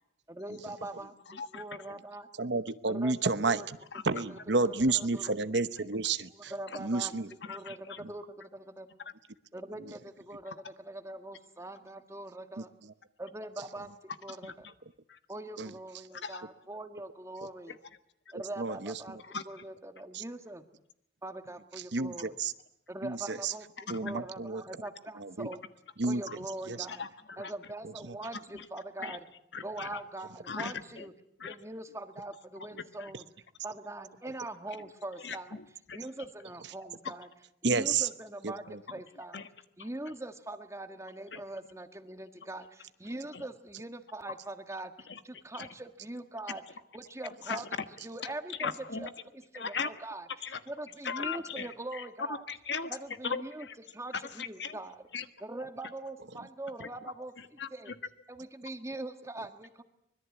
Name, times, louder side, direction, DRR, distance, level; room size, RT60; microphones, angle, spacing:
voice 1, 0.3-2.3 2.9-3.1 3.4-3.7 4.3-5.5 6.3-7.1 7.5-8.9 9.5-12.7 13.2-13.9 14.2-14.5 15.3-17.7 18.3-19.2 19.5-20.6 21.2-22.3 22.9-23.7 24.0-25.6 26.1-27.0 27.4-29.2 29.6-31.1 31.4-33.2 33.6-35.6 35.9-37.3 37.6-38.6 38.9-39.4 39.8-44.9 45.2-46.6 46.9-47.6 48.0-48.7 49.0-49.1 49.5-50.2 50.7-52.4 52.9-53.7 53.9-54.9 55.4-57.9 58.3-59.8, right 1 dB, 15° right, 7 dB, 1.6 m, -42 dB
voice 2, 1.3-1.6 3.9-4.0 5.5-5.6 6.7-6.8 7.4-8.0 9.0-9.1 14.3-14.7 15.1-15.2 16.2-16.4 17.7-17.8 19.2-19.6 23.8-24.1 26.3-26.4 26.8-27.5 28.3-28.7 29.0-29.2 29.5-30.0 30.4-31.1 31.4-31.6 32.7-33.1 35.2-36.0 37.0-37.1 39.3-39.5 39.8-39.9 41.3-41.4 42.4-42.5 43.3-43.4 45.0-45.7 46.5-46.6 47.4-47.7 48.2-49.1 49.5-49.9 50.4-50.6 51.0-53.0 53.2-53.7 54.1-54.8 55.1-55.3 56.8-56.9 57.4-57.9, left 5 dB, 65° left, 10 dB, 1.4 m, -39 dB
voice 3, 2.4-3.6 4.0-6.5 6.8-7.3 8.0-8.1 9.8-9.9 12.6-12.9 15.6-15.7 18.3-19.2 20.1-20.2 21.9-22.5 23.0-23.5 23.9-24.6 25.2-25.5 26.0-26.2 26.7-26.9 27.8-28.2 37.6-38.1 38.4-38.8, right 3 dB, 65° right, 13 dB, 0.9 m, -31 dB
24.5 x 21.0 x 8.4 m, 0.77 s
head